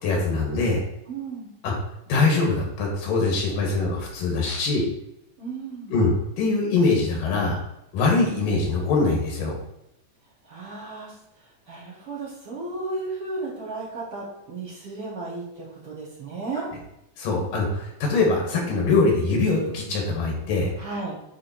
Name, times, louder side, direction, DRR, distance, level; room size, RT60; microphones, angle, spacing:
voice 1, 0.0-0.8 1.6-1.7 2.1-4.8 5.9-7.6 7.9-9.6 17.2-20.7, left 3 dB, 75° left, 0 dB, 3.3 m, -23 dB
voice 2, 1.1-1.5 5.4-6.0 10.4-16.7 20.8-21.2, right 3 dB, 45° right, -6 dB, 2.4 m, -34 dB
9.9 x 4.2 x 4.4 m, 0.85 s
omnidirectional pair, 3.9 m